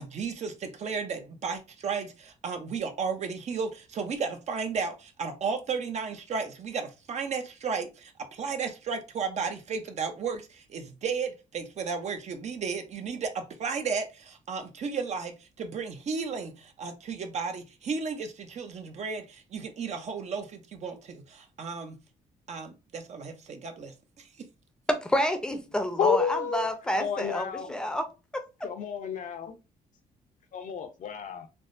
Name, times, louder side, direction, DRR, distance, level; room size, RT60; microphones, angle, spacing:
voice 1, 0.0-22.0 22.5-24.5, right 5 dB, 50° right, 0.6 m, -34 dB
voice 2, 24.9-28.4, left 1 dB, 5° left, 0.6 m, -29 dB
voice 3, 26.0-27.7 28.6-29.6 30.5-31.5, left 6 dB, 60° left, 0.6 m, -31 dB
3.4 x 2.0 x 2.5 m
cardioid pair, 90°, 15 cm